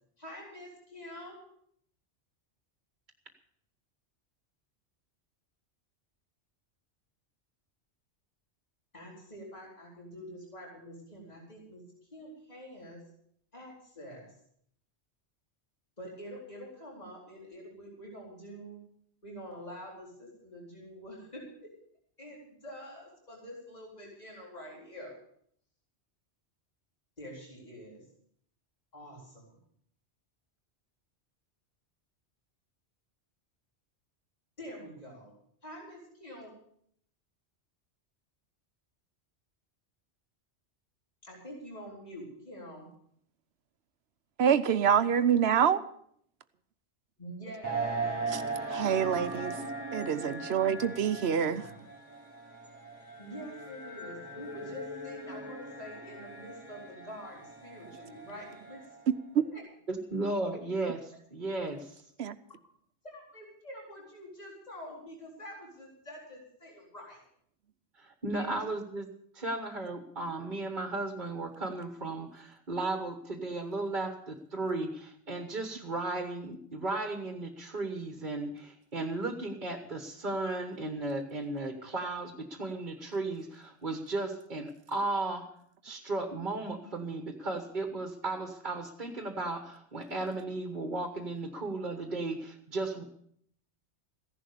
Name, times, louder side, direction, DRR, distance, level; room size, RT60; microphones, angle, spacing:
voice 1, 0.2-1.4 8.9-11.8 12.1-13.0 13.5-14.3 16.0-18.8 19.2-21.7 22.2-25.1 27.2-28.1 28.9-29.6 34.6-35.3 35.6-36.5 41.2-42.9 47.2-48.9 51.3-51.7 53.2-58.8 59.3-59.6 63.0-67.2 68.3-68.7, equal, 35° left, -3 dB, 4.3 m, -46 dB
voice 2, 44.4-45.8 48.3-48.4 48.7-49.5 49.9-51.6 59.3-59.4 62.2-62.4, right 8 dB, 65° right, 12 dB, 1.1 m, -26 dB
sound 1, 47.6-59.0, right 3 dB, 15° right, 6.3 m, -39 dB
voice 3, 59.9-62.0 67.9-69.1 69.3-85.5 85.8-93.0, right 2 dB, 45° right, 5 dB, 1.5 m, -35 dB
15.5 x 11.0 x 6.8 m, 0.66 s
omnidirectional pair, 1.2 m